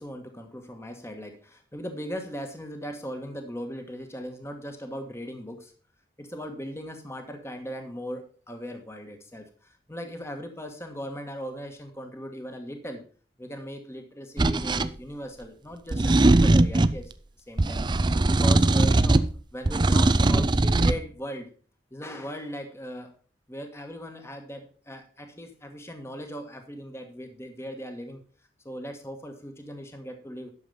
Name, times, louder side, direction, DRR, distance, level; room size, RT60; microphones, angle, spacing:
voice 1, 0.0-5.7 6.2-13.0 13.4-17.1 17.5-19.2 19.5-21.5 21.9-23.1 23.5-28.2 28.6-30.5, equal, 15° left, 5 dB, 1.4 m, -38 dB
sound 1, 14.4-14.9 15.9-17.0 17.6-19.3 19.7-21.0, right 2 dB, 25° right, 0.5 m, -20 dB
11.0 x 6.9 x 5.5 m, 0.40 s
head